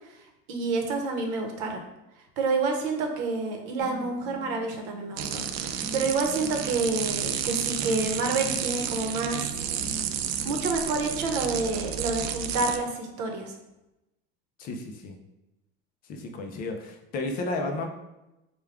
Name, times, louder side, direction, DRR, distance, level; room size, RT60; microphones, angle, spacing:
voice 1, 0.5-1.8 2.4-9.5 10.4-13.5, right 3 dB, 65° right, 3 dB, 0.8 m, -28 dB
sound 1, 3.8-11.8, left 1 dB, 10° left, 0.9 m, -44 dB
sound 2, 5.2-12.8, right 9 dB, 85° right, 0.5 m, -31 dB
voice 2, 14.6-15.2 16.1-17.9, left 2 dB, 30° left, 4 dB, 0.4 m, -32 dB
4.6 x 2.2 x 3.4 m, 0.96 s
cardioid pair, 170°, 30 cm